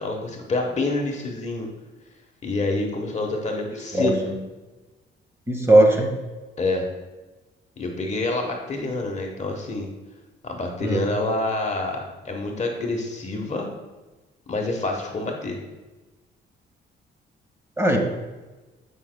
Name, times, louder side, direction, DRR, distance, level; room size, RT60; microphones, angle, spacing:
voice 1, 0.0-1.7 2.4-4.2 6.6-6.9 7.8-9.9 10.4-13.7 14.5-15.6, left 2 dB, 35° left, 1 dB, 1.1 m, -27 dB
voice 2, 3.9-4.3 5.5-6.2 10.8-11.0 17.8-18.0, right 1 dB, 15° right, 2 dB, 1.5 m, -18 dB
12.0 x 5.4 x 2.2 m, 1.2 s
cardioid pair, 90°, 20 cm